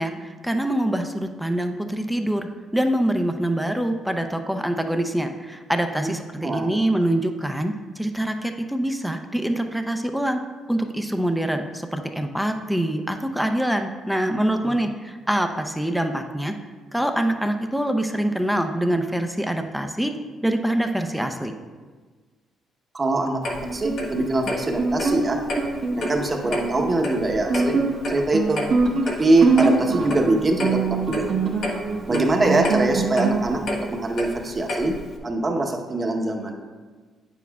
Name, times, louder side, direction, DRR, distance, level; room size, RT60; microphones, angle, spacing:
voice 1, 0.0-10.4 10.7-16.5 16.9-20.1 20.4-21.5, right 1 dB, ahead, 6 dB, 0.6 m, -25 dB
voice 2, 6.0-6.8 14.6-14.7 22.9-25.4 25.9-27.8 28.1-28.6 29.2-31.3 32.1-33.6 33.9-34.9 35.2-36.6, right 2 dB, 30° right, 2 dB, 1.0 m, -23 dB
Clock, 23.4-35.2, left 1 dB, 65° left, 1.2 m, -32 dB
Guitar, 23.6-33.6, right 4 dB, 55° right, 1.1 m, -24 dB
8.9 x 7.1 x 2.4 m, 1.4 s
cardioid pair, 80°, 0 cm